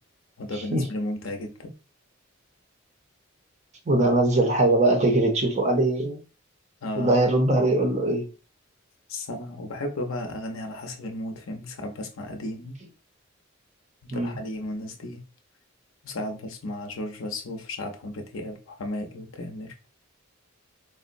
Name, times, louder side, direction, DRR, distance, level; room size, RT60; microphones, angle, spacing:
voice 1, 0.4-1.7 6.8-7.2 9.1-12.8 14.0-15.2 16.0-19.7, left 1 dB, 75° left, 0.6 m, -34 dB
voice 2, 3.9-6.2 7.0-8.3 14.1-14.3, right 2 dB, 35° right, 0.6 m, -21 dB
3.7 x 2.0 x 2.5 m
head